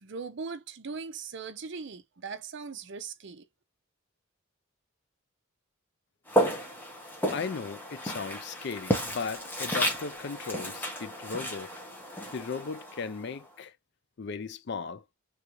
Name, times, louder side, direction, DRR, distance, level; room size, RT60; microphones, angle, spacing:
voice 1, 0.0-3.4, right 5 dB, 55° right, 0.5 m, -39 dB
Walk footsteps, 6.3-13.4, equal, 10° left, 0.9 m, -32 dB
voice 2, 7.3-11.7 12.3-13.7 14.2-15.0, left 5 dB, 50° left, 0.4 m, -36 dB
3.5 x 2.5 x 2.9 m
head